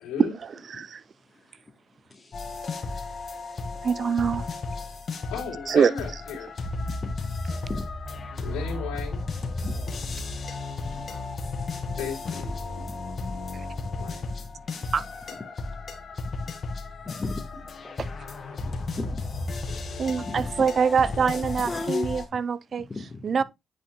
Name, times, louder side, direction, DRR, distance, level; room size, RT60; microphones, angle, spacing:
voice 1, 0.0-0.3 5.3-6.5 8.4-9.2 12.0-12.6 13.9-14.2 18.5-18.8 19.7-20.1 21.1-21.4, left 6 dB, 85° left, 3.3 m, -36 dB
sound 1, 2.3-22.3, left 3 dB, 50° left, 1.8 m, -34 dB
voice 2, 2.7-3.6 7.0-7.1 7.7-7.9 9.6-9.7 12.8-13.0 13.3-13.4 14.3-14.5 14.8-14.9 16.9-17.4 17.8-17.9 19.0-19.2 20.0-21.0 21.5-22.1 22.9-23.4, left 3 dB, 30° left, 1.5 m, -36 dB
voice 3, 3.8-4.5 5.7-5.9 14.9-15.0 20.0-22.9 23.2-23.4, right 6 dB, 50° right, 0.5 m, -24 dB
9.4 x 5.1 x 2.3 m
supercardioid pair, 60°, 0 cm